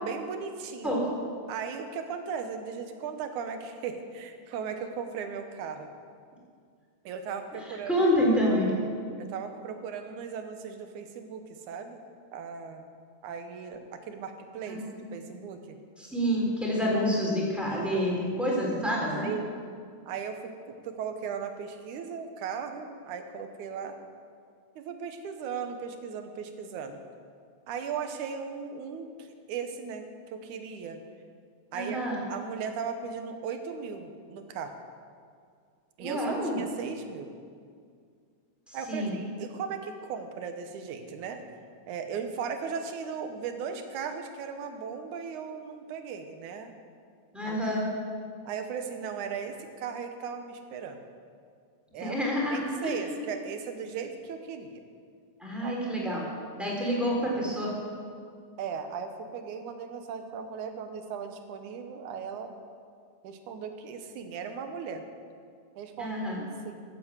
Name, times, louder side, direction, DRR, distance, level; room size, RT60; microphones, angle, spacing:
voice 1, 0.0-0.9 1.5-5.9 7.0-8.1 9.2-12.0 12.3-12.8 13.2-14.8 15.1-15.8 17.7-18.0 19.2-19.5 20.1-24.0 24.8-27.0 27.7-31.0 31.7-34.7 36.0-37.3 38.7-41.5 41.9-46.7 47.4-47.6 48.5-51.0 51.9-52.2 52.5-54.8 55.6-55.8 58.6-62.5 63.2-65.0 65.8-66.8, right 6 dB, 80° right, 7 dB, 2.5 m, -37 dB
voice 2, 7.9-8.7 14.7-14.8 15.3-15.4 16.0-19.3 31.7-32.2 36.0-36.5 38.7-39.1 47.3-47.8 52.0-52.9 55.4-56.2 56.5-57.7 66.0-66.4, equal, ahead, -4 dB, 3.4 m, -28 dB
13.5 x 8.4 x 8.0 m, 2.2 s
omnidirectional pair, 3.5 m